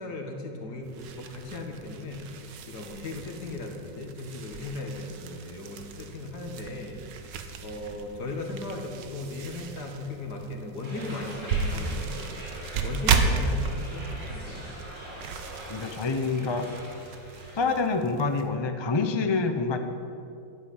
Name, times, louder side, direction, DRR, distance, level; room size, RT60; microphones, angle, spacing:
voice 1, 0.0-7.4 7.6-14.7, left 2 dB, 60° left, 2 dB, 2.4 m, -37 dB
sound 1, 0.8-18.5, right 5 dB, 70° right, 1.6 m, -34 dB
sound 2, 10.8-17.6, right 1 dB, 45° right, 5.3 m, -43 dB
voice 2, 15.7-16.7 17.5-19.8, left 4 dB, 30° left, 6 dB, 0.4 m, -26 dB
13.0 x 9.6 x 9.6 m, 2.6 s
omnidirectional pair, 2.0 m